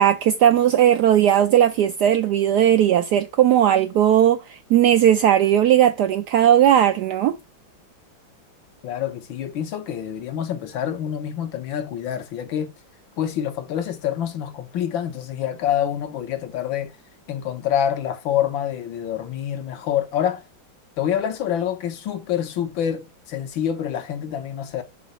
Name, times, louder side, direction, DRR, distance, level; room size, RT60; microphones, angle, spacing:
voice 1, 0.0-7.4, right 10 dB, 75° right, 0.9 m, -17 dB
voice 2, 8.8-12.7 13.2-16.9 17.3-20.4 21.0-24.8, left 9 dB, 75° left, 1.7 m, -26 dB
5.2 x 3.9 x 5.4 m
omnidirectional pair, 2.2 m